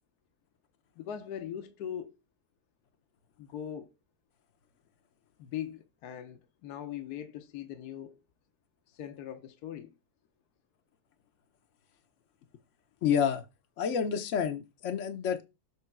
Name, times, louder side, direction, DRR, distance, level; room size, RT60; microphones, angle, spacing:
voice 1, 1.0-2.1 3.4-3.9 5.4-8.2 8.9-9.9, left 10 dB, 75° left, 1.3 m, -40 dB
voice 2, 13.0-13.4 13.8-15.4, left 7 dB, 60° left, 1.0 m, -29 dB
7.6 x 3.2 x 5.9 m
omnidirectional pair, 1.7 m